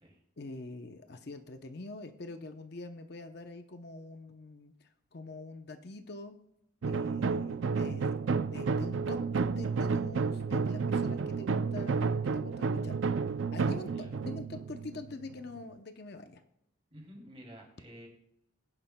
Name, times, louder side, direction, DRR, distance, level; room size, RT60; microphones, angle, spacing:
voice 1, 0.4-6.4 6.9-8.2 8.4-9.2 9.5-13.0 13.5-16.4, left 2 dB, 50° left, 7 dB, 0.7 m, -45 dB
sound 1, 6.8-15.6, right 5 dB, 65° right, 0.4 m, -31 dB
voice 2, 13.8-14.2 16.9-18.1, equal, 30° right, 0 dB, 2.7 m, -51 dB
21.5 x 10.5 x 2.2 m, 0.81 s
head